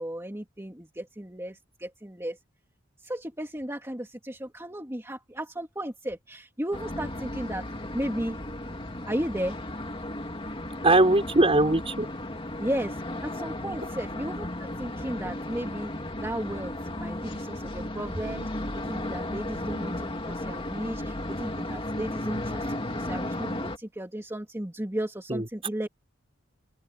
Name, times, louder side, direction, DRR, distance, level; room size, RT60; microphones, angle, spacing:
voice 1, 0.0-2.4 3.0-7.6 7.9-8.4 9.1-9.6 12.6-15.9 16.2-26.0, right 1 dB, 15° right, 2.7 m, -35 dB
sound 1, 6.7-23.8, left 1 dB, 25° left, 2.3 m, -34 dB
voice 2, 10.8-12.1 25.3-25.5, right 2 dB, 30° right, 4.7 m, -20 dB
open air
head